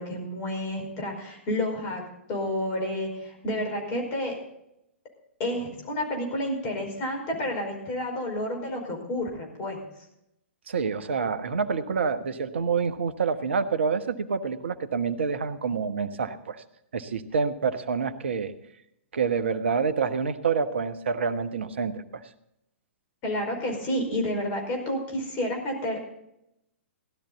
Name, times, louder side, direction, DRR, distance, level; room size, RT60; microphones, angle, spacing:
voice 1, 0.0-2.0 2.3-4.4 5.4-9.8 23.2-26.0, left 1 dB, 35° left, 2 dB, 5.1 m, -30 dB
voice 2, 10.7-16.6 16.9-18.5 19.1-22.0, right 5 dB, 65° right, 11 dB, 1.1 m, -27 dB
16.5 x 12.0 x 4.0 m, 0.80 s
figure-of-eight pair, 110°, 7 cm